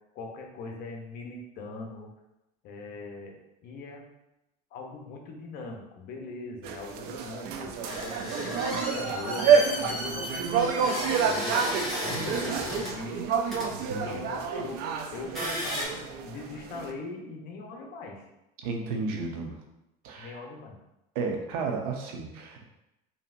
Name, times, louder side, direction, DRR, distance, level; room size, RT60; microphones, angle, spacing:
voice 1, 0.1-2.1 2.6-4.0 4.7-11.7 12.0-13.3 13.9-14.8 15.1-18.2 19.0-19.2 20.2-20.8, left 3 dB, 55° left, 2 dB, 0.8 m, -41 dB
sound 1, 6.6-16.9, right 6 dB, 55° right, 0.4 m, -28 dB
sound 2, 7.9-13.0 13.5-13.7 15.2-15.8, left 1 dB, ahead, 1.4 m, -34 dB
voice 2, 12.1-12.6 13.7-14.2 18.6-19.6 20.0-20.4 21.1-22.7, right 4 dB, 85° right, 3 dB, 0.8 m, -34 dB
5.4 x 2.8 x 2.6 m, 0.92 s
cardioid pair, 135°, 19 cm